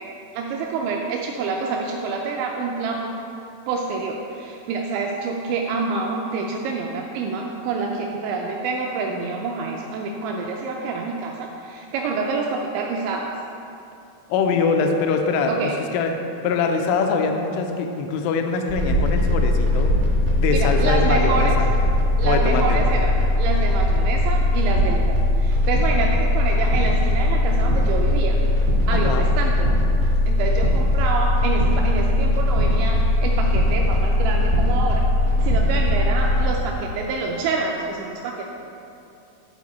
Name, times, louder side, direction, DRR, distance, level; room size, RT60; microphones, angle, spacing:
voice 1, 0.3-3.1 3.7-13.3 15.5-15.8 20.5-21.6 22.2-28.4 28.9-29.7 30.3-35.1 35.4-38.5, right 4 dB, 85° right, 0 dB, 2.5 m, -27 dB
voice 2, 14.3-16.2 16.4-19.9 20.4-21.7 22.2-22.8 28.9-29.3, left 4 dB, 85° left, 4 dB, 3.1 m, -23 dB
sound 1, 18.7-36.4, left 1 dB, 70° right, 0.9 m, -19 dB
12.5 x 4.5 x 4.1 m, 2.7 s
omnidirectional pair, 5.7 m